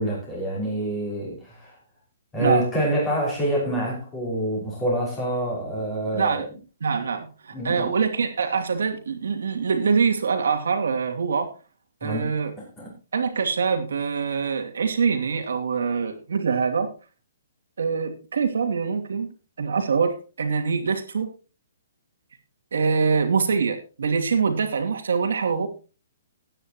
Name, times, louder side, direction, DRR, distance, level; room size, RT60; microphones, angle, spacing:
voice 1, 0.0-1.7 2.3-6.5 7.5-7.9 12.0-12.3 12.6-12.9, right 1 dB, 10° left, 5.7 m, -27 dB
voice 2, 6.1-6.5 6.8-11.5 12.0-12.5 13.1-16.9 17.8-21.3 22.7-25.7, right 5 dB, 85° right, 2.8 m, -24 dB
15.5 x 9.9 x 3.0 m
hypercardioid pair, 175°, 0 cm